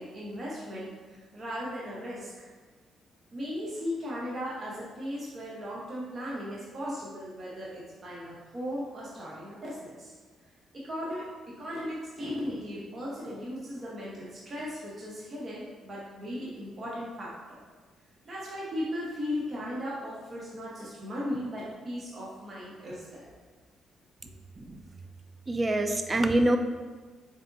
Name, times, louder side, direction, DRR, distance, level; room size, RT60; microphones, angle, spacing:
voice 1, 0.0-2.5 3.3-10.1 10.7-11.3 11.6-17.6 18.2-23.3, equal, 40° right, -6 dB, 1.0 m, -37 dB
voice 2, 25.5-26.6, right 1 dB, 25° right, 7 dB, 0.4 m, -25 dB
4.2 x 3.4 x 2.6 m, 1.4 s
cardioid pair, 90°, 0 cm